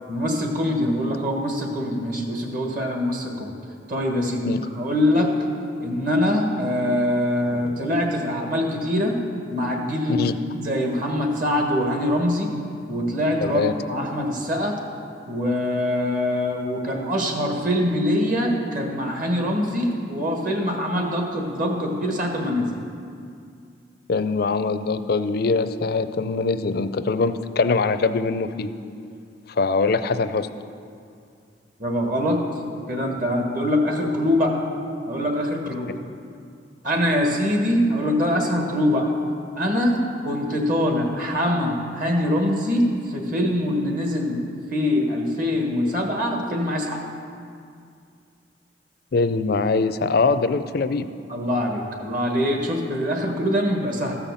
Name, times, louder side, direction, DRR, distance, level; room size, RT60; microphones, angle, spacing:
voice 1, 0.1-3.5 3.9-5.3 5.8-9.2 9.5-10.3 10.5-12.5 12.9-14.8 15.3-22.7 31.8-32.4 32.9-34.6 35.1-35.9 36.8-39.1 39.6-40.0 40.2-47.0 51.3-54.1, left 1 dB, 50° right, 1 dB, 1.5 m, -23 dB
voice 2, 13.4-13.7 24.1-28.7 29.6-30.5 49.1-51.1, left 4 dB, 55° left, 11 dB, 0.5 m, -22 dB
14.0 x 5.7 x 6.9 m, 2.3 s
head